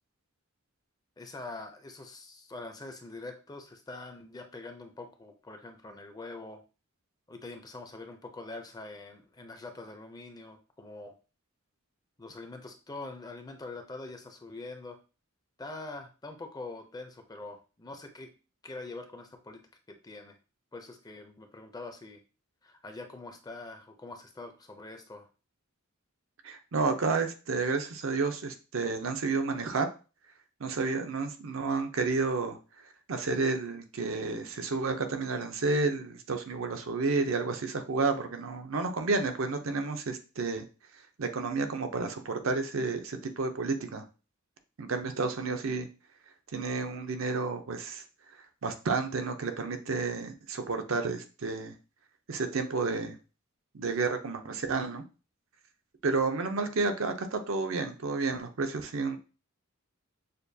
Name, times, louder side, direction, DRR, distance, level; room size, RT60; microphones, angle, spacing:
voice 1, 1.2-6.6 7.3-11.1 12.2-15.0 15.6-18.3 18.6-19.6 19.9-20.4 20.7-22.2 22.6-25.3, left 2 dB, 20° left, 5 dB, 0.5 m, -44 dB
voice 2, 26.4-29.9 30.6-32.6 33.1-40.7 41.2-44.1 44.8-45.9 46.5-48.0 48.6-51.8 52.3-53.2 53.7-55.0 56.0-59.2, right 4 dB, 70° right, 6 dB, 0.6 m, -31 dB
6.6 x 2.3 x 2.7 m, 0.32 s
head